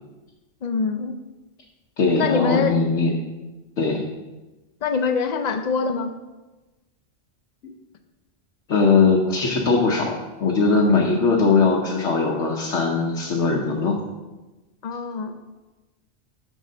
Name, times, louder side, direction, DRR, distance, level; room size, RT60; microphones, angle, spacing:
voice 1, 0.6-1.2 2.2-2.8 4.8-6.1 14.8-15.4, left 5 dB, 50° left, 7 dB, 0.6 m, -24 dB
voice 2, 2.0-3.1 3.8-4.0 8.7-14.0, left 4 dB, 80° left, -1 dB, 1.2 m, -20 dB
6.4 x 4.3 x 6.5 m, 1.1 s
omnidirectional pair, 1.2 m